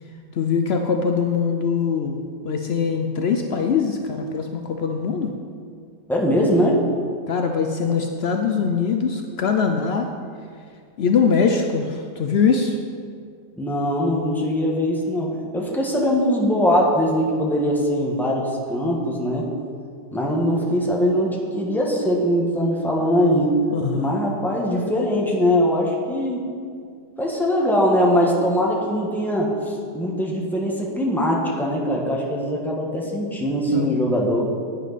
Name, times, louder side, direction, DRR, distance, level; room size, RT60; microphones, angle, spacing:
voice 1, 0.3-5.3 7.3-10.1 11.0-12.8 23.7-24.2 33.7-33.9, left 5 dB, 85° left, 4 dB, 0.5 m, -22 dB
voice 2, 6.1-6.8 13.6-19.5 20.1-23.5 23.9-26.4 27.2-34.5, equal, ahead, -3 dB, 1.2 m, -21 dB
11.0 x 9.2 x 4.1 m, 2.2 s
omnidirectional pair, 1.8 m